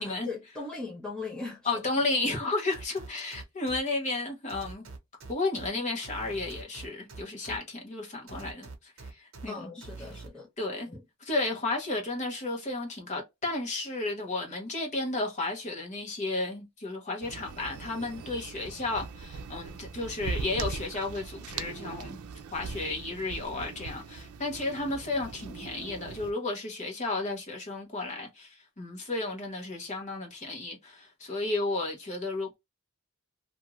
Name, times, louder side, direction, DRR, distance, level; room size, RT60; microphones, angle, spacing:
voice 1, 0.0-1.8 9.5-10.5 10.9-11.0, left 3 dB, 5° left, 0.7 m, -39 dB
voice 2, 1.7-4.8 5.3-9.7 10.6-10.9 11.2-22.2 22.5-32.6, left 2 dB, 35° left, 0.9 m, -33 dB
sound 1, 2.7-3.8 4.5-5.7 6.0-7.6 8.3-9.5 9.8-10.3, right 3 dB, 60° right, 0.8 m, -44 dB
sound 2, 17.2-26.3, right 4 dB, 85° right, 0.4 m, -40 dB
2.6 x 2.4 x 3.0 m
head